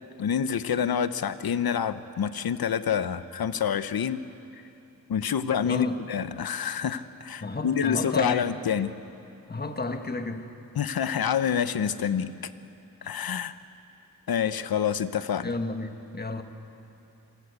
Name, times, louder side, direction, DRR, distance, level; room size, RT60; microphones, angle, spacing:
voice 1, 0.2-4.2 5.1-9.0 10.7-12.5 13.0-13.5 14.3-15.5, left 8 dB, 85° left, 12 dB, 1.0 m, -27 dB
voice 2, 5.6-6.0 7.4-8.5 9.5-10.5 15.4-16.4, left 3 dB, 25° left, 6 dB, 1.6 m, -32 dB
28.0 x 23.5 x 8.4 m, 2.8 s
wide cardioid pair, 115°, 35 cm